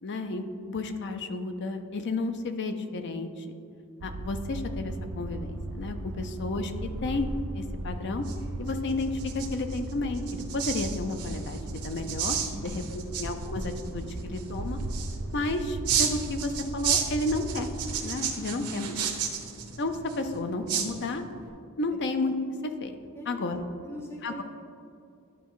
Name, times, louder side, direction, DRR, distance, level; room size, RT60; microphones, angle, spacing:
voice 1, 0.0-3.5 4.0-7.3 7.5-8.2 8.6-14.8 15.3-17.7 18.0-19.0 19.8-21.2 21.8-22.4 22.6-22.9 23.3-23.6 24.2-24.4, left 2 dB, 50° left, 7 dB, 0.5 m, -32 dB
sound 1, 4.0-18.0, right 1 dB, 65° right, 0.5 m, -37 dB
sound 2, 7.9-21.5, right 8 dB, 85° right, 0.8 m, -34 dB
voice 2, 12.5-13.2 23.2-23.5 23.8-24.4, equal, 10° left, -2 dB, 0.7 m, -43 dB
11.5 x 4.5 x 3.1 m, 2.4 s
head